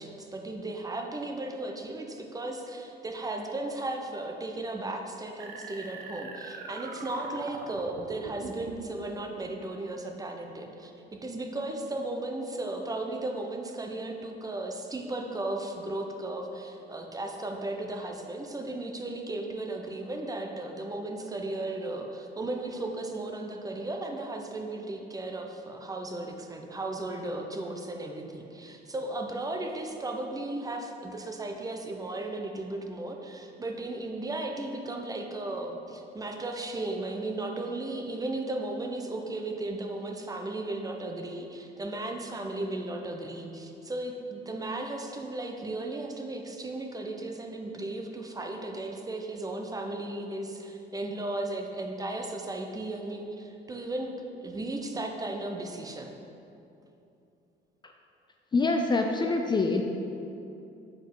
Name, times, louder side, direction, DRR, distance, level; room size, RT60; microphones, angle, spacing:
voice 1, 0.0-56.1, right 2 dB, 20° right, 3 dB, 0.6 m, -35 dB
sound 1, 5.4-8.9, right 3 dB, 85° right, 0.7 m, -42 dB
voice 2, 58.5-59.8, left 3 dB, 25° left, 3 dB, 0.4 m, -25 dB
7.2 x 4.8 x 3.8 m, 2.7 s
cardioid pair, 105°, 19 cm